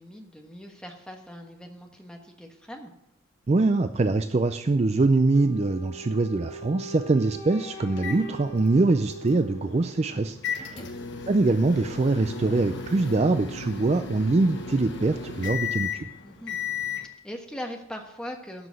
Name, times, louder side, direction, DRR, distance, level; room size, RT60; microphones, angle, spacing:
voice 1, 0.0-2.9 7.2-7.3 10.7-10.9 16.2-18.7, equal, 5° left, 2 dB, 1.3 m, -41 dB
voice 2, 3.5-10.8 11.3-16.1, right 3 dB, 30° right, 9 dB, 0.4 m, -23 dB
Wind instrument woodwind instrument, 5.3-10.4, right 1 dB, 75° left, 3.1 m, -42 dB
sound 1, 8.0-17.1, left 6 dB, 55° left, 1.1 m, -35 dB
12.5 x 6.0 x 7.8 m, 0.84 s
head